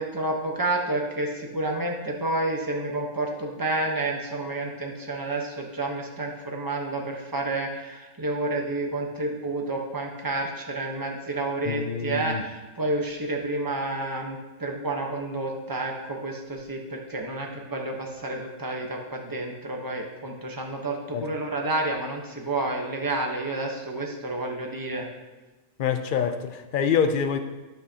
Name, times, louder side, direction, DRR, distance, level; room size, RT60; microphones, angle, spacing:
voice 1, 0.0-25.1, right 2 dB, 15° right, 0 dB, 0.9 m, -30 dB
voice 2, 11.7-12.4 21.1-21.2 25.8-27.4, left 7 dB, 55° left, 7 dB, 0.6 m, -26 dB
12.5 x 6.0 x 2.9 m, 1.2 s
omnidirectional pair, 1.5 m